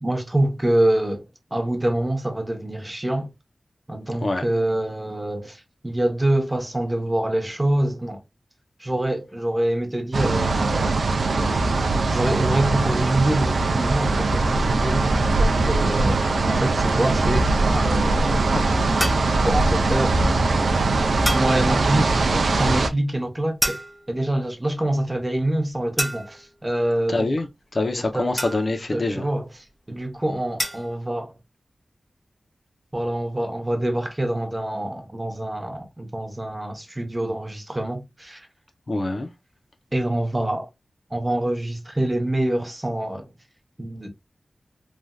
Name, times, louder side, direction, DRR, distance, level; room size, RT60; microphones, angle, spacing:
voice 1, 0.0-3.3 3.9-8.2 8.8-11.0 12.1-17.5 17.7-18.4 19.4-20.2 21.3-23.8 24.1-27.3 28.1-28.3 28.9-29.5 29.9-31.3 32.9-38.5 39.9-40.7 41.1-43.3 43.8-44.1, right 1 dB, 20° right, 0.8 m, -25 dB
sound 1, 10.1-22.9, right 3 dB, 85° right, 0.4 m, -21 dB
sound 2, 19.0-19.4 21.3-21.6 23.6-24.2 26.0-26.5 28.4-28.9 30.6-30.9, equal, 10° left, 0.7 m, -28 dB
voice 2, 27.1-27.5 27.7-29.3 38.9-39.3, left 2 dB, 50° left, 0.6 m, -25 dB
3.2 x 2.6 x 2.2 m
wide cardioid pair, 95°, 0 cm